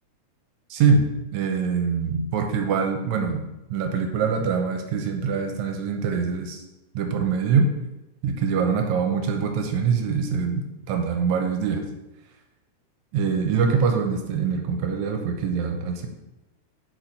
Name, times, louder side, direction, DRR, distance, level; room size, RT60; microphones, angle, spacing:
voice 1, 0.7-1.1 1.3-3.4 3.7-6.6 7.0-7.7 8.2-11.8 13.1-16.1, right 5 dB, 80° right, 4 dB, 1.9 m, -24 dB
5.9 x 4.5 x 4.0 m, 0.95 s
omnidirectional pair, 3.5 m